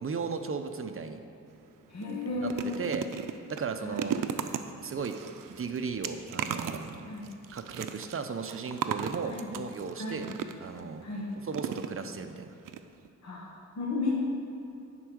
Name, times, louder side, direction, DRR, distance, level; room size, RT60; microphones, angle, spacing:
voice 1, 0.0-1.2 2.4-2.5 2.8-3.1 3.5-4.2 4.8-5.2 5.6-7.1 7.5-10.3 10.6-11.0 11.5-12.5, right 5 dB, 45° right, 6 dB, 0.7 m, -35 dB
sound 1, 1.5-1.6 2.0-10.8 11.5-12.3 12.6-12.8 13.0-13.1, right 8 dB, 90° right, 0.5 m, -37 dB
voice 2, 1.9-2.8 3.8-4.1 7.0-7.3 9.2-9.6 10.0-10.2 11.0-11.3 13.2-14.1, left 3 dB, 55° left, -4 dB, 1.4 m, -34 dB
9.9 x 4.7 x 6.2 m, 2.8 s
wide cardioid pair, 95°, 32 cm